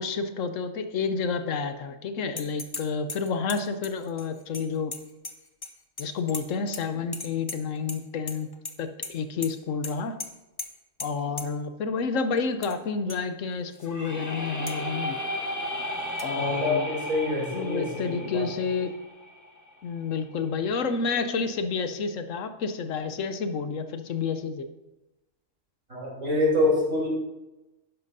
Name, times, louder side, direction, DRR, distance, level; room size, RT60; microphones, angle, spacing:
voice 1, 0.0-4.9 6.0-8.5 8.8-10.2 11.0-15.2 16.2-16.9 17.5-18.9 19.8-24.7, left 5 dB, 70° left, 9 dB, 1.0 m, -30 dB
sound 1, 2.4-2.8 3.1-5.7 6.0-6.8 7.1-8.0 8.3-8.7 9.0-9.1 9.4-9.5 9.8-9.9 10.2-10.3 10.6-10.7 11.0-11.1 11.4-11.5 12.4-12.7 13.1-13.2 13.7-13.8 14.7-14.8 16.2-16.3, left 3 dB, 30° left, 0.4 m, -37 dB
sound 2, 13.8-19.7, left 1 dB, 15° left, 0.8 m, -34 dB
voice 2, 16.3-18.5 25.9-27.1, left 2 dB, 75° right, -5 dB, 3.9 m, -26 dB
11.5 x 10.5 x 2.7 m, 1.0 s
omnidirectional pair, 1.4 m